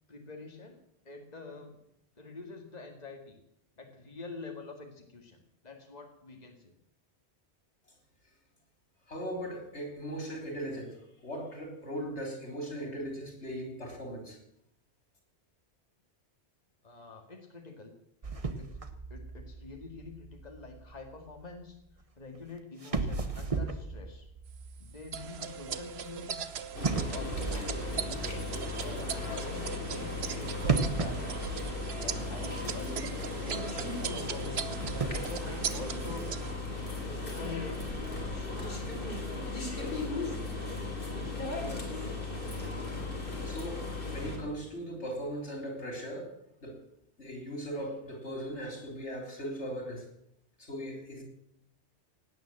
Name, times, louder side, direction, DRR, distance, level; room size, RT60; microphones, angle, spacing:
voice 1, 0.1-1.8 2.2-3.4 3.8-6.7 16.8-17.9 18.6-18.7 19.1-21.8 22.2-24.3 24.8-26.4 26.8-31.5 32.0-36.3 37.4-38.0 41.2-42.4, left 3 dB, 40° left, 3 dB, 2.2 m, -46 dB
voice 2, 9.1-11.0 11.2-14.4 43.4-43.8 44.1-46.3 46.6-46.8 47.2-50.1 50.6-51.2, equal, 85° left, 3 dB, 4.0 m, -38 dB
sound 1, 18.2-21.4 22.3-22.4 22.8-26.2 26.8-28.7 30.6-32.4 32.7-32.8 33.4-33.5 34.5-35.2, right 4 dB, 30° right, 1.2 m, -35 dB
sound 2, 25.1-36.5, right 7 dB, 70° right, 1.1 m, -39 dB
sound 3, 26.7-44.4, left 2 dB, 55° left, 3.6 m, -36 dB
17.5 x 9.4 x 7.6 m, 0.75 s
omnidirectional pair, 1.1 m